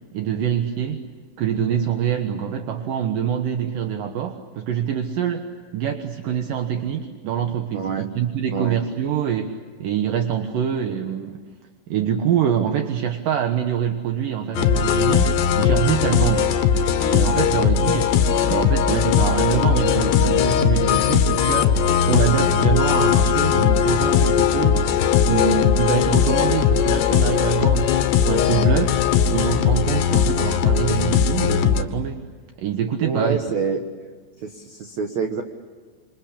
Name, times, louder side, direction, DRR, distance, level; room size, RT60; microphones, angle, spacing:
voice 1, 0.1-1.0 1.4-11.4 11.9-16.5 17.1-18.2 18.4-21.8 22.0-24.9 25.2-29.0 29.3-32.2 32.6-33.4, right 9 dB, 70° right, 5 dB, 2.2 m, -25 dB
voice 2, 7.7-8.1 8.5-8.8 33.0-33.8 34.4-35.4, right 5 dB, 90° right, 5 dB, 1.5 m, -26 dB
sound 1, 14.6-31.8, left 8 dB, 70° left, 3.1 m, -19 dB
27.0 x 26.0 x 8.5 m, 1.5 s
omnidirectional pair, 5.6 m